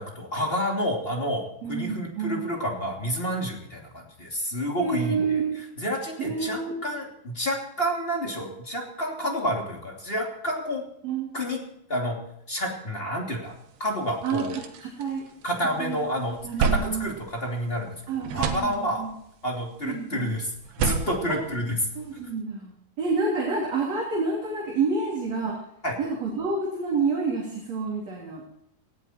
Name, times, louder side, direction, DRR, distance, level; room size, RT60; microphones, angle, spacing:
voice 1, 0.0-1.4 1.7-5.4 5.8-10.8 11.3-11.6 11.9-12.2 12.5-13.5 13.8-14.6 15.4-19.0 19.4-20.5 20.8-21.8 25.8-26.0, equal, 15° left, 0 dB, 2.5 m, -29 dB
voice 2, 1.6-2.4 4.8-5.6 6.2-7.0 11.0-11.3 14.2-15.2 15.8-16.0 16.4-17.1 18.1-19.1 19.8-20.3 21.3-21.4 22.0-22.7 23.0-25.6 26.0-28.4, right 4 dB, 45° right, -3 dB, 4.1 m, -28 dB
sound 1, 13.6-13.7 14.0-15.7 16.1-17.9 18.2-19.3 20.5-22.2, right 6 dB, 80° right, 3.5 m, -30 dB
18.5 x 16.5 x 4.5 m, 0.72 s
omnidirectional pair, 4.6 m